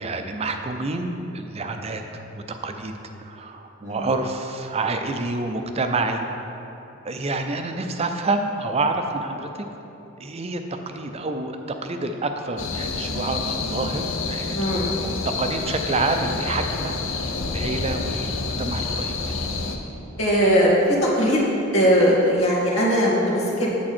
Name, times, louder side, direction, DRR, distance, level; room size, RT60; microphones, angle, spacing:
voice 1, 0.0-6.8 7.0-9.5 10.2-19.4, right 2 dB, 30° right, 6 dB, 0.5 m, -28 dB
sound 1, 12.6-19.8, left 3 dB, 70° left, 0.7 m, -28 dB
voice 2, 14.5-15.0 20.2-21.4 21.7-23.7, equal, 90° left, -5 dB, 2.2 m, -20 dB
8.7 x 7.4 x 4.4 m, 2.9 s
head